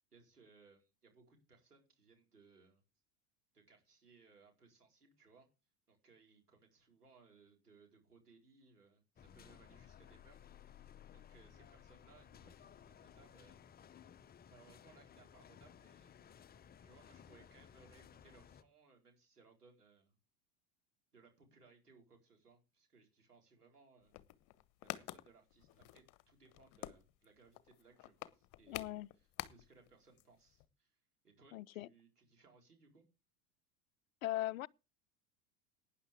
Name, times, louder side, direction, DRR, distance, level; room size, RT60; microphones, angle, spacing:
voice 1, 0.0-2.8 3.5-5.5 5.9-13.7 14.5-16.1 16.8-20.1 21.1-24.1 24.8-31.0 31.2-33.0, right 4 dB, 85° right, 4.7 m, -66 dB
sound 1, 9.2-18.6, left 8 dB, 20° left, 0.8 m, -59 dB
sound 2, 24.0-29.9 30.2-30.3 30.5-30.7, left 17 dB, 45° left, 1.1 m, -48 dB
voice 2, 28.7-29.1 31.5-31.9 34.2-34.7, left 16 dB, 65° left, 0.6 m, -39 dB
18.5 x 9.9 x 3.5 m
figure-of-eight pair, 80°, 45 cm